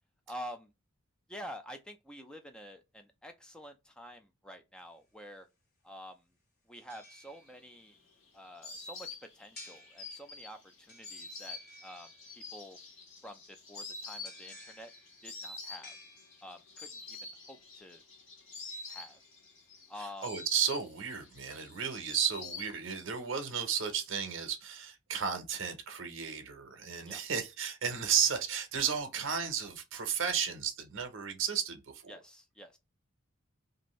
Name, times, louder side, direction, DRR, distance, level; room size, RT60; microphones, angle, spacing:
voice 1, 0.3-0.7 1.3-5.5 5.8-6.2 6.7-8.0 8.3-9.1 9.3-12.8 13.2-14.9 15.2-16.0 16.4-18.0 18.9-19.2 19.9-20.3 27.1-27.2 32.1-32.8, equal, 5° left, 0.4 m, -48 dB
sound 1, 4.8-4.9 6.7-7.9 9.5-10.5 10.9-12.6 14.2-16.8 18.7-19.9 20.3-20.4, left 1 dB, 45° left, 1.3 m, -56 dB
Insect, 7.5-23.2 23.4-24.3, left 3 dB, 70° left, 1.1 m, -47 dB
voice 2, 20.0-32.1, right 7 dB, 65° right, 0.7 m, -33 dB
2.6 x 2.5 x 3.0 m
head